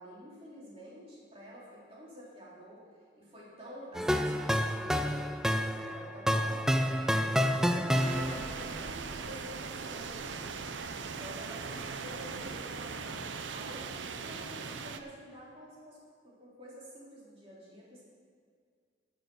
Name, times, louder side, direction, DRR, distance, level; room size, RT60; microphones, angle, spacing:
voice 1, 0.0-2.8 3.1-7.0 7.4-10.6 10.9-16.0 16.2-18.0, equal, 30° right, -6 dB, 3.5 m, -49 dB
sound 1, 3.9-8.6, equal, 5° right, 0.4 m, -29 dB
sound 2, 7.9-15.0, right 5 dB, 85° right, 0.6 m, -39 dB
13.5 x 6.9 x 6.2 m, 2.1 s
head